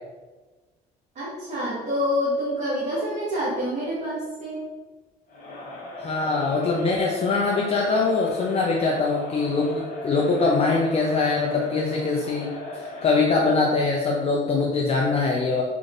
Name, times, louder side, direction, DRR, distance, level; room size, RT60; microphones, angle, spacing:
voice 1, 1.1-4.7, equal, 45° right, -9 dB, 1.3 m, -27 dB
Crowd, 5.3-13.4, left 1 dB, 60° left, 0.9 m, -38 dB
voice 2, 6.0-15.6, left 3 dB, 35° left, -1 dB, 0.5 m, -23 dB
3.8 x 3.6 x 2.5 m, 1.3 s
cardioid pair, 110°, 17 cm